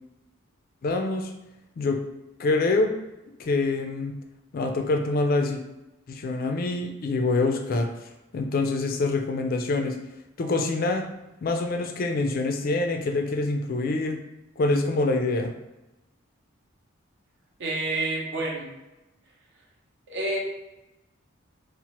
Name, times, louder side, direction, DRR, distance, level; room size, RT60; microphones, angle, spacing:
voice 1, 0.8-1.3 1.8-2.0 2.4-3.0 3.4-4.1 4.5-5.6 6.1-7.9 8.3-10.0 10.4-11.1 11.4-14.2 14.6-15.5, left 3 dB, 45° left, 4 dB, 0.3 m, -25 dB
voice 2, 17.6-18.7 20.1-20.4, right 2 dB, 60° right, -3 dB, 0.7 m, -28 dB
2.9 x 2.1 x 2.9 m, 0.99 s
head